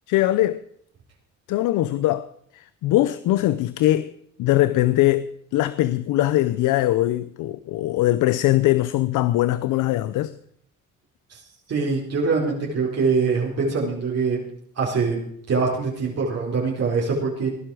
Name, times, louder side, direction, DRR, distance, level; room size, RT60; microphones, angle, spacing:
voice 1, 0.1-0.6 1.5-4.1 4.4-10.4, left 15 dB, 90° left, 0.7 m, -21 dB
voice 2, 11.7-14.4 14.8-15.2 15.5-17.5, right 4 dB, 55° right, 4.3 m, -23 dB
19.5 x 11.0 x 4.9 m
cardioid pair, 90°, 30 cm